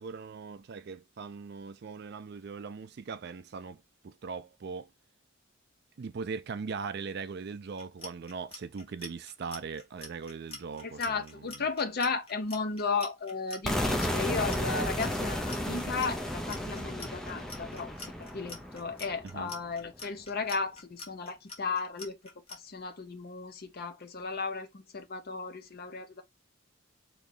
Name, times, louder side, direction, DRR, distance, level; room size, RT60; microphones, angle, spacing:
voice 1, 0.0-4.9 6.0-11.7 19.2-19.5, right 5 dB, 55° right, 0.4 m, -40 dB
Clock, 7.7-22.6, left 3 dB, 30° left, 1.2 m, -45 dB
voice 2, 10.8-17.9 18.3-22.2 22.6-26.2, left 4 dB, 50° left, 0.7 m, -34 dB
sound 1, 13.6-19.5, left 1 dB, ahead, 0.5 m, -33 dB
3.1 x 2.7 x 3.9 m
head